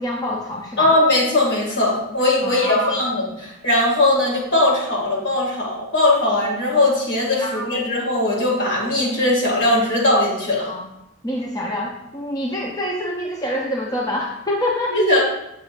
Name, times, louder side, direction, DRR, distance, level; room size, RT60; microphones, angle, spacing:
voice 1, 0.0-0.9 2.4-3.0 7.4-7.7 10.7-10.8 11.2-15.0, left 1 dB, 20° left, -2 dB, 0.6 m, -26 dB
voice 2, 0.8-10.7 14.9-15.2, left 1 dB, 60° left, -3 dB, 2.2 m, -19 dB
7.2 x 6.5 x 2.5 m, 0.85 s
head